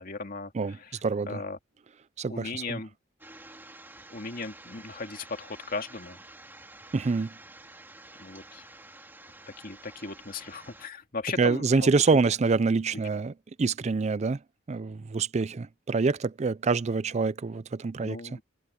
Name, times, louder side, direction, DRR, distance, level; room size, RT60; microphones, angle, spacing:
voice 1, 0.0-1.6 2.3-2.9 4.1-6.2 8.2-8.6 9.6-11.9 18.0-18.4, left 3 dB, 50° left, 2.3 m, -37 dB
voice 2, 1.0-1.4 2.2-2.8 6.9-7.3 11.4-13.3 13.6-14.4 14.7-18.2, right 4 dB, 35° right, 0.4 m, -26 dB
sound 1, 3.2-10.9, right 2 dB, 10° right, 2.6 m, -49 dB
head